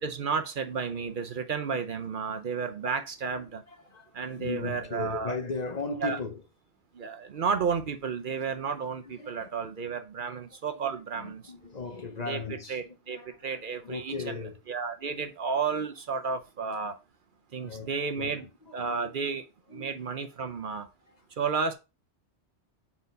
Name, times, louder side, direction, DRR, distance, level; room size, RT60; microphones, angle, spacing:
voice 1, 0.0-3.6 4.1-5.4 6.0-6.2 6.9-11.4 12.3-12.4 12.7-16.9 17.5-18.5 18.7-19.4 19.7-20.9 21.4-21.7, right 5 dB, 55° right, 0.8 m, -32 dB
voice 2, 3.7-6.4 9.0-9.6 10.3-10.4 10.8-14.6 17.6-19.1 19.7-19.9, left 4 dB, 45° left, 0.8 m, -38 dB
4.4 x 4.0 x 5.2 m
omnidirectional pair, 1.1 m